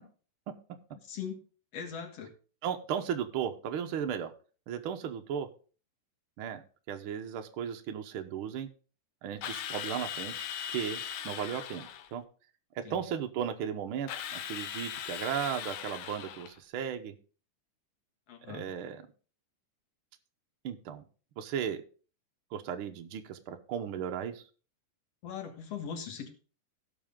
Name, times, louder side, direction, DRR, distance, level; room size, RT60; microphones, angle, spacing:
voice 1, 1.1-1.4 1.7-2.3 12.8-13.0 18.3-18.7 25.2-26.3, left 7 dB, 55° left, 5 dB, 2.5 m, -40 dB
voice 2, 2.6-4.3 4.7-5.5 6.4-8.7 9.2-12.2 12.9-17.1 18.5-19.0 20.6-21.0 21.4-21.8 22.5-24.4, right 8 dB, 75° right, 5 dB, 1.2 m, -36 dB
Drill, 9.4-12.1 14.1-16.6, left 9 dB, 80° left, 2.4 m, -39 dB
16.5 x 6.2 x 3.7 m, 0.38 s
omnidirectional pair, 3.6 m